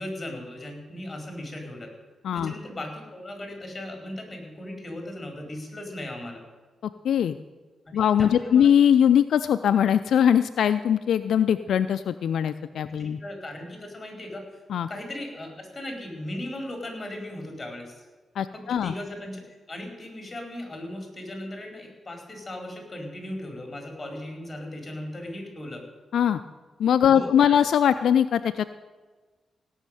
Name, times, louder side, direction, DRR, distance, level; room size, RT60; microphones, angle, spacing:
voice 1, 0.0-1.9 2.3-6.4 8.2-8.7 13.0-14.4 14.9-18.0 18.5-25.8 27.1-27.6, left 1 dB, 25° left, 3 dB, 4.7 m, -37 dB
voice 2, 7.0-7.4 7.9-13.2 14.7-14.9 18.4-18.9 26.1-26.4 26.8-28.7, left 9 dB, 80° left, 10 dB, 0.4 m, -21 dB
17.0 x 6.4 x 9.1 m, 1.3 s
cardioid pair, 75°, 0 cm